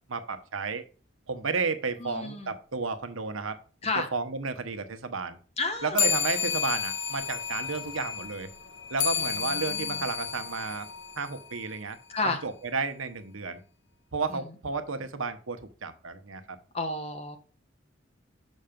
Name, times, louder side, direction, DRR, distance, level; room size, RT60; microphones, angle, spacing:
voice 1, 0.1-0.8 1.3-3.6 4.1-5.4 5.8-8.5 8.9-10.9 11.2-12.0 12.2-13.6 14.1-16.6, right 4 dB, 90° right, 9 dB, 1.0 m, -32 dB
voice 2, 2.0-2.5 3.8-4.1 5.6-6.0 9.5-10.0 12.1-12.4 14.3-14.4 16.7-17.4, left 3 dB, 30° left, 6 dB, 1.1 m, -31 dB
sound 1, 5.9-11.8, left 7 dB, 65° left, 0.8 m, -31 dB
6.4 x 5.6 x 5.2 m, 0.39 s
head